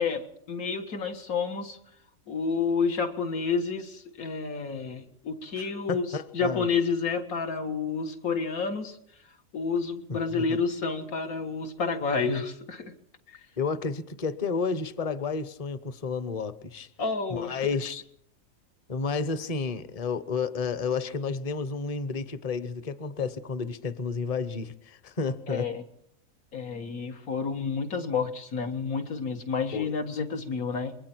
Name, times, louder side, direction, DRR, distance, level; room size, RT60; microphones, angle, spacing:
voice 1, 0.0-1.8 2.3-6.1 6.3-9.0 9.5-12.9 13.3-13.4 17.0-17.6 25.5-25.8 26.5-31.0, left 5 dB, 80° left, 4 dB, 2.1 m, -30 dB
voice 2, 5.6-6.7 10.1-10.6 13.6-16.9 17.3-18.0 18.9-25.7 29.7-29.9, left 4 dB, 30° left, 13 dB, 0.8 m, -31 dB
27.0 x 21.5 x 4.5 m, 0.69 s
omnidirectional pair, 1.5 m